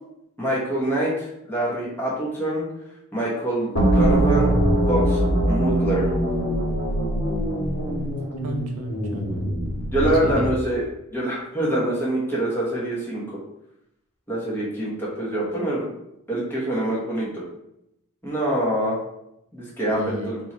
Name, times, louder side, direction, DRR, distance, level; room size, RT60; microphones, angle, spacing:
voice 1, 0.4-2.6 3.1-4.5 4.9-5.2 5.5-6.1 9.9-10.8 11.1-13.4 14.3-15.9 16.3-17.4 18.2-19.0 19.5-20.4, right 1 dB, 10° left, -6 dB, 1.1 m, -25 dB
sound 1, 3.8-10.7, right 1 dB, 60° left, 1.4 m, -22 dB
voice 2, 8.4-9.6 10.0-10.5 19.8-20.3, right 1 dB, 80° right, 3 dB, 0.7 m, -32 dB
3.6 x 2.8 x 4.3 m, 0.82 s
head